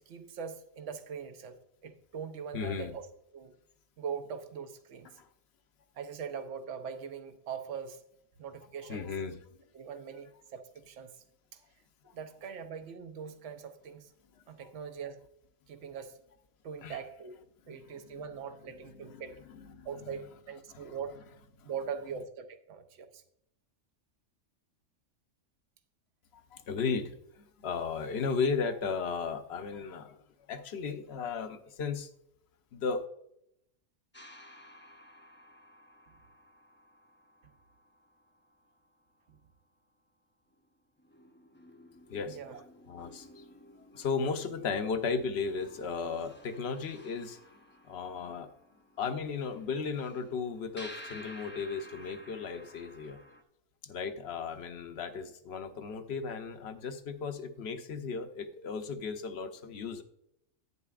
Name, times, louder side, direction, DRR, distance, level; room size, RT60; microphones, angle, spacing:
voice 1, 0.0-1.6 1.8-3.1 3.3-3.5 4.0-5.1 5.9-8.0 8.4-9.1 9.7-11.1 11.5-11.6 12.1-14.1 14.5-15.2 15.7-16.2 16.6-17.4 17.7-19.4 19.8-21.1 21.6-23.2 39.3-39.4 42.3-42.6, right 7 dB, 70° right, 8 dB, 1.1 m, -41 dB
voice 2, 2.5-2.9 5.2-5.3 8.8-9.4 12.1-12.2 14.3-14.4 16.8-17.0 17.7-18.2 19.1-19.2 19.5-20.1 20.7-20.9 21.6-21.7 26.3-30.2 30.5-32.1 32.7-33.0 42.1-42.4 42.9-43.4 43.9-47.4 47.8-48.5 49.0-53.2 53.8-60.0, left 5 dB, 60° left, 8 dB, 0.9 m, -35 dB
sound 1, 34.1-39.0 40.5-40.6 41.0-53.4, left 1 dB, 15° left, 0.5 m, -54 dB
11.0 x 9.2 x 2.4 m, 0.76 s
omnidirectional pair, 1.3 m